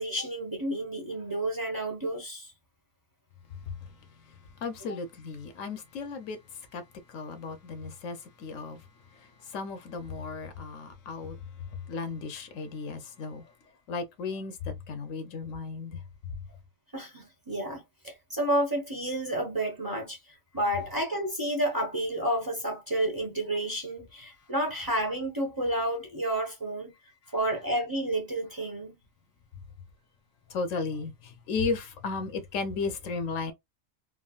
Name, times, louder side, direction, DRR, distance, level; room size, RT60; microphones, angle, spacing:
voice 1, 0.0-2.5 4.9-5.0 16.9-26.9 27.3-28.9, right 1 dB, 20° right, 0.8 m, -30 dB
voice 2, 4.6-6.4 6.7-6.8 7.1-8.8 9.5-11.4 11.9-13.4 13.9-14.5 14.9-16.0 30.5-33.5, left 4 dB, 85° left, 1.1 m, -34 dB
3.6 x 2.0 x 2.4 m
omnidirectional pair, 1.3 m